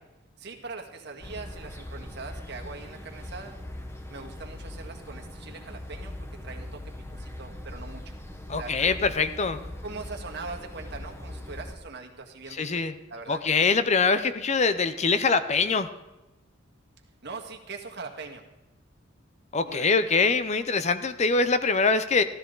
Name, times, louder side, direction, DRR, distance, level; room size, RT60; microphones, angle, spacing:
voice 1, 0.4-3.5 4.1-8.1 8.5-9.1 9.8-12.8 13.1-13.4 17.2-18.5 19.6-19.9, right 4 dB, 55° right, 2 dB, 1.7 m, -41 dB
sound 1, 1.2-11.8, left 1 dB, 10° left, 1.1 m, -40 dB
voice 2, 8.5-9.6 12.6-12.9 13.3-15.9 19.5-22.2, left 4 dB, 35° left, 12 dB, 0.6 m, -23 dB
15.0 x 13.0 x 3.9 m, 1.0 s
head